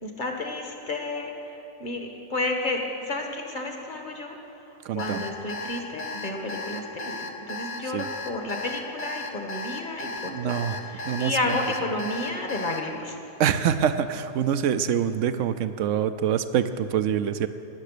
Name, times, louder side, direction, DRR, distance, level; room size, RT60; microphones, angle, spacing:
voice 1, 0.0-4.4 4.9-13.2, left 2 dB, 40° left, 3 dB, 1.5 m, -31 dB
voice 2, 4.9-5.3 7.9-8.1 10.2-11.6 13.4-17.5, right 8 dB, 75° right, 11 dB, 0.9 m, -25 dB
Alarm, 5.0-12.8, left 2 dB, 55° left, 1.2 m, -35 dB
19.0 x 6.9 x 6.7 m, 2.8 s
omnidirectional pair, 1.3 m